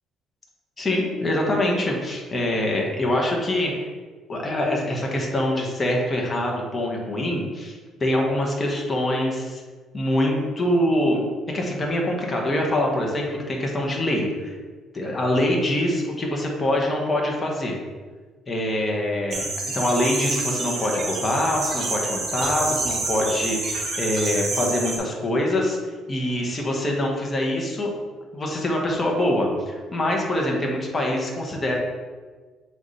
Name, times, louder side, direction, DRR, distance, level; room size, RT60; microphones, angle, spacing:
voice 1, 0.8-3.9 4.3-9.6 9.9-11.2 11.5-14.6 14.9-17.7 18.5-25.8 26.1-27.9 28.3-31.7, left 1 dB, 30° left, -1 dB, 1.6 m, -24 dB
sound 1, 19.3-25.0, right 3 dB, 50° right, 1.6 m, -28 dB
7.3 x 4.2 x 3.4 m, 1.4 s
supercardioid pair, 80°, 0 cm